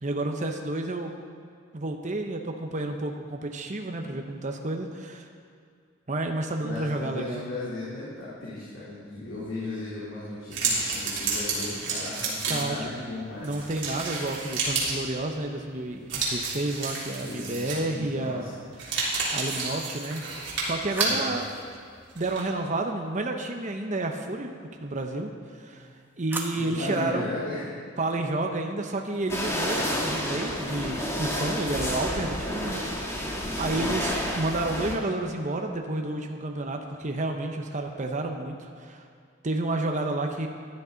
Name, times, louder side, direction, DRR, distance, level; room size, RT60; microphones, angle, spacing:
voice 1, 0.0-1.1 1.7-5.3 6.1-7.4 12.5-12.8 13.4-18.5 19.3-20.2 20.6-21.5 22.1-24.5 24.8-25.9 26.2-27.3 28.0-33.3 33.6-39.0 39.4-40.5, right 2 dB, 40° right, 3 dB, 0.9 m, -30 dB
voice 2, 6.6-13.5 17.1-18.5 20.9-21.2 25.8-25.9 26.5-27.7 33.6-34.0, left 2 dB, 80° left, -10 dB, 3.5 m, -36 dB
sound 1, 10.5-12.8 13.4-15.0 16.1-18.0 18.7-21.2 22.2-22.4, right 3 dB, 60° right, 3.5 m, -30 dB
sound 2, 20.1-23.2 25.6-27.1, right 2 dB, 10° right, 1.1 m, -41 dB
sound 3, 29.3-35.0, equal, 15° left, 1.6 m, -30 dB
16.0 x 11.0 x 4.0 m, 2.3 s
head